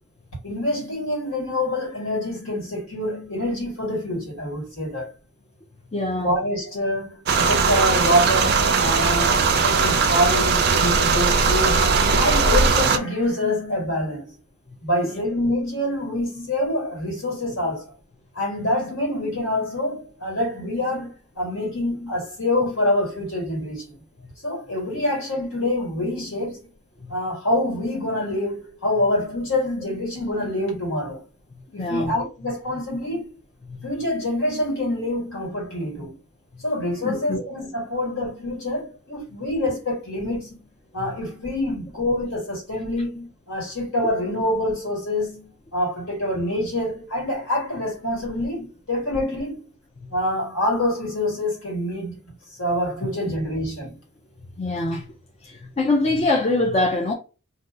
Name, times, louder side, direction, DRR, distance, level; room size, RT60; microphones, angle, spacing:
voice 1, 0.4-5.1 6.2-14.3 14.8-17.9 18.3-23.9 24.4-26.6 27.1-31.2 31.7-33.3 33.8-36.1 36.6-40.6 40.9-49.6 50.1-53.9, left 1 dB, 70° left, 1.7 m, -26 dB
voice 2, 5.9-6.3 31.8-32.1 33.7-33.8 37.0-37.4 54.6-55.0 55.8-57.1, left 2 dB, 30° left, 0.4 m, -23 dB
sound 1, 7.3-13.0, right 4 dB, 50° right, 0.4 m, -19 dB
2.7 x 2.2 x 3.5 m
head